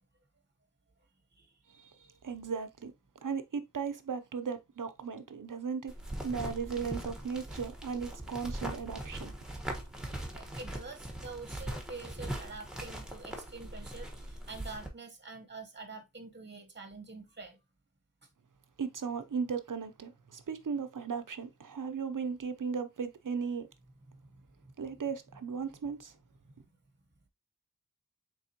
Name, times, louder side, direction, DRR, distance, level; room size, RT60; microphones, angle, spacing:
voice 1, 2.2-2.9 3.2-5.9 6.2-9.3 18.8-23.7 24.8-26.1, right 6 dB, 70° right, 0.6 m, -36 dB
sound 1, 5.9-14.9, right 1 dB, ahead, 1.1 m, -41 dB
voice 2, 10.3-14.1 14.5-17.6, right 3 dB, 35° right, 0.9 m, -46 dB
4.3 x 3.4 x 2.8 m
wide cardioid pair, 40°, 33 cm